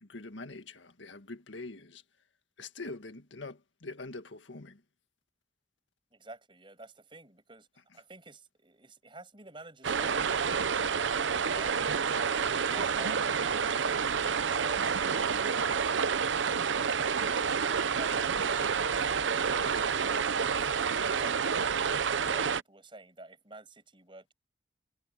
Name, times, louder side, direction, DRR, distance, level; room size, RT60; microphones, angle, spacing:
voice 1, 0.0-2.0 2.6-4.8, left 3 dB, 90° left, 1.8 m, -44 dB
voice 2, 6.1-7.7 7.9-10.6 11.2-14.0 14.5-19.3 19.6-21.6 22.0-24.3, right 2 dB, 25° right, 6.9 m, -50 dB
sound 1, 9.8-22.6, right 6 dB, 85° right, 0.7 m, -29 dB
head